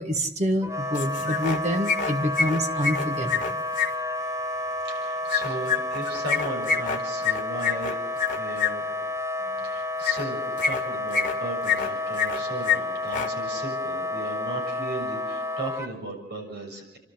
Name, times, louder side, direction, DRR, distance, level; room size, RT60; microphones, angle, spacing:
voice 1, 0.0-3.6, equal, 40° right, 6 dB, 1.6 m, -27 dB
Wind instrument woodwind instrument, 0.6-15.9, left 1 dB, 15° right, 1.0 m, -30 dB
sound 1, 0.9-1.6 1.8-3.9 5.3-8.7 10.0-10.2 10.6-11.3 11.6-12.4 12.6-12.8 13.0-13.3, left 6 dB, 50° left, 1.7 m, -26 dB
voice 2, 4.8-8.0 8.3-9.0 9.6-17.0, right 2 dB, 70° right, 1 dB, 6.7 m, -36 dB
30.0 x 12.5 x 7.9 m, 0.96 s
head